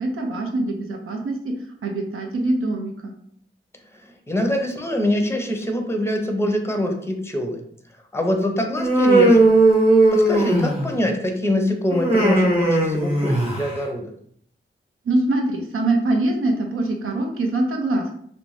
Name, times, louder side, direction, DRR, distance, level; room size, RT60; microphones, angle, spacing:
voice 1, 0.0-1.6 1.8-3.1 15.0-18.1, right 2 dB, 90° right, 2 dB, 0.5 m, -23 dB
voice 2, 4.0-7.6 8.1-9.5 10.1-14.1, left 1 dB, 10° left, 4 dB, 0.5 m, -24 dB
Human voice, 8.8-11.0 11.9-13.8, right 2 dB, 25° right, 0.8 m, -17 dB
2.5 x 2.0 x 3.1 m, 0.64 s
cardioid pair, 50°, 21 cm